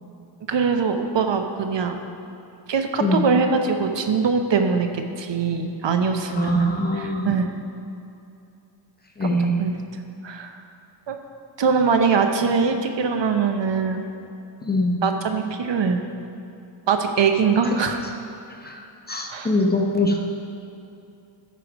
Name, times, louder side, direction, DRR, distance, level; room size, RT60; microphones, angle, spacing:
voice 1, 0.5-2.0 2.7-6.7 7.0-7.6 9.2-9.3 9.6-9.8 10.2-10.5 11.1-11.2 11.6-14.0 15.0-16.0 16.9-18.1 19.3-19.5, right 5 dB, 60° right, 6 dB, 0.8 m, -22 dB
voice 2, 6.3-7.3 9.2-9.5 14.6-15.0 18.6-20.2, left 1 dB, 20° left, 1 dB, 0.8 m, -23 dB
13.0 x 5.0 x 4.9 m, 2.7 s
wide cardioid pair, 120°, 49 cm